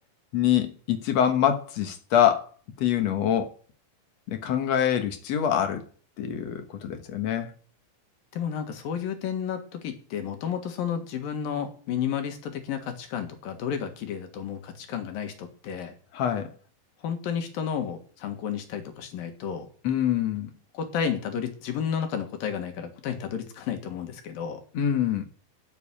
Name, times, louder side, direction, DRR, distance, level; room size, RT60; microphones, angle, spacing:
voice 1, 0.3-2.5 2.8-3.5 4.3-5.8 6.2-7.5 16.1-16.5 19.8-20.5 24.7-25.2, left 9 dB, 60° left, 2.0 m, -25 dB
voice 2, 8.3-15.9 17.0-19.7 20.7-24.6, left 8 dB, 75° left, 3.4 m, -32 dB
12.0 x 7.3 x 8.4 m
omnidirectional pair, 4.1 m